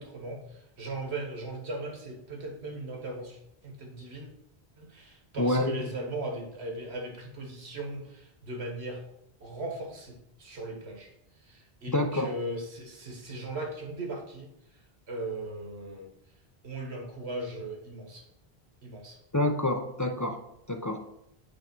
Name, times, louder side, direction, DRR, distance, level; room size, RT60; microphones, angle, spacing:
voice 1, 0.0-4.3 4.8-9.0 9.4-11.1 11.4-14.5 15.1-16.1 16.6-18.2 18.8-19.2, right 2 dB, 80° right, 1 dB, 1.7 m, -38 dB
voice 2, 5.4-5.8 11.9-12.3 19.3-21.1, left 1 dB, 30° left, 5 dB, 0.4 m, -28 dB
8.8 x 3.3 x 5.9 m, 0.78 s
omnidirectional pair, 1.1 m